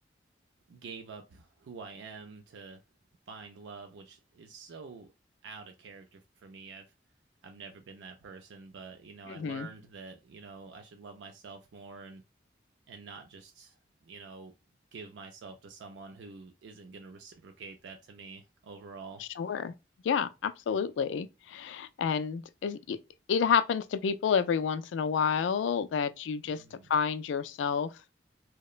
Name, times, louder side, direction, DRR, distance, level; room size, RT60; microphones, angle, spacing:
voice 1, 0.7-2.8 3.3-5.1 5.4-6.9 7.4-12.2 12.9-14.5 14.9-19.3 26.5-26.9, right 4 dB, 80° right, 0.4 m, -47 dB
voice 2, 9.3-9.7 19.2-19.7 20.0-23.0 23.3-26.6 26.9-27.9, left 6 dB, 85° left, 0.3 m, -29 dB
2.8 x 2.1 x 2.3 m
head